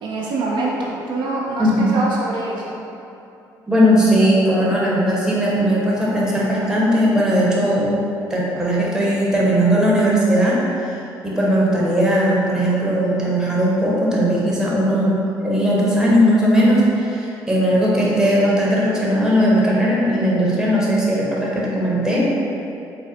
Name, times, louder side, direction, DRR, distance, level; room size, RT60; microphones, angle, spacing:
voice 1, 0.0-2.7, right 2 dB, 65° right, -4 dB, 0.6 m, -24 dB
voice 2, 1.6-1.9 3.7-8.0 8.3-10.9 11.2-22.2, equal, 5° right, -6 dB, 1.1 m, -18 dB
4.0 x 2.0 x 4.1 m, 2.8 s
supercardioid pair, 65°, 9 cm